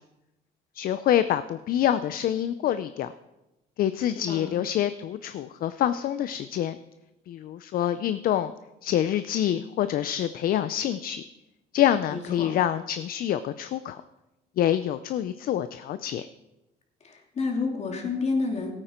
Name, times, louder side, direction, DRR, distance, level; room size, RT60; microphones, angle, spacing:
voice 1, 0.7-3.1 3.8-6.8 7.3-8.5 8.8-11.2 11.7-14.0 14.6-16.3, left 11 dB, 60° left, 13 dB, 0.5 m, -26 dB
voice 2, 12.1-12.5 17.0-18.7, left 4 dB, 40° left, 2 dB, 2.6 m, -29 dB
17.0 x 8.9 x 4.4 m, 0.96 s
cardioid pair, 110°, 17 cm